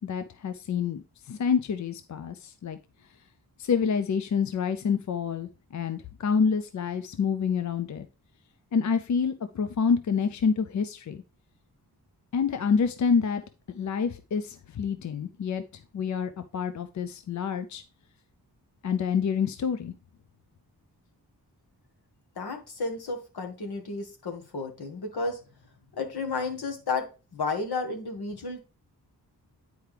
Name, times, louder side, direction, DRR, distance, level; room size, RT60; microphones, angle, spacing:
voice 1, 0.0-2.8 3.6-8.1 8.7-11.2 12.3-13.4 13.7-15.6 15.9-17.8 18.8-19.9, left 6 dB, 50° left, 10 dB, 0.5 m, -27 dB
voice 2, 22.4-25.4 26.0-27.1 27.3-28.6, left 3 dB, 75° left, 3 dB, 1.8 m, -32 dB
9.8 x 4.6 x 3.3 m, 0.32 s
wide cardioid pair, 140°, 39 cm